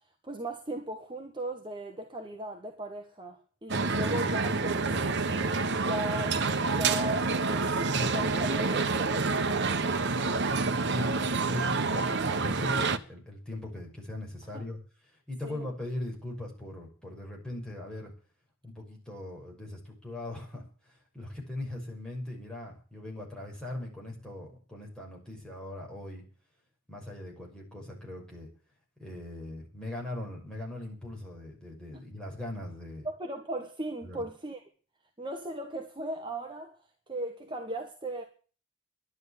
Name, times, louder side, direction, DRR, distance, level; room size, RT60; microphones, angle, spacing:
voice 1, 0.2-5.0 5.9-10.0 14.5-14.7 15.4-15.7 31.9-32.0 33.0-34.6 35.2-36.8 37.1-38.2, right 1 dB, 25° right, 1.7 m, -37 dB
sound 1, 3.7-13.0, right 3 dB, 55° right, 1.2 m, -28 dB
voice 2, 11.4-14.8 15.3-18.1 18.6-26.2 26.9-28.5 29.0-33.1 34.0-34.2, left 1 dB, 5° left, 6.2 m, -40 dB
12.0 x 11.0 x 8.5 m
head